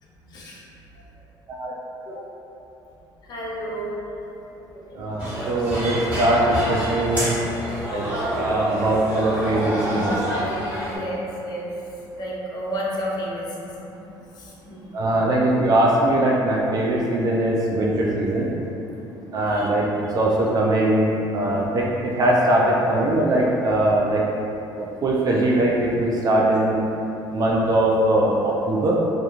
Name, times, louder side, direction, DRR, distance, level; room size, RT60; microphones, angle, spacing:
voice 1, 0.2-0.6 2.1-2.3 3.2-3.9 4.4-5.7 7.6-8.0 10.5-11.7 12.2-14.0 14.4-14.9 19.1-19.2 19.5-19.7, equal, 50° left, -4 dB, 0.6 m, -33 dB
voice 2, 5.0-7.3 7.9-8.0 8.3-10.2 14.9-18.5 19.3-19.9 20.1-24.2 24.8-26.8 27.3-29.0, right 1 dB, 45° right, -3 dB, 0.4 m, -21 dB
sound 1, 5.2-11.0, right 1 dB, 15° right, 1.2 m, -27 dB
2.4 x 2.2 x 2.9 m, 3.0 s
cardioid pair, 95°, 9 cm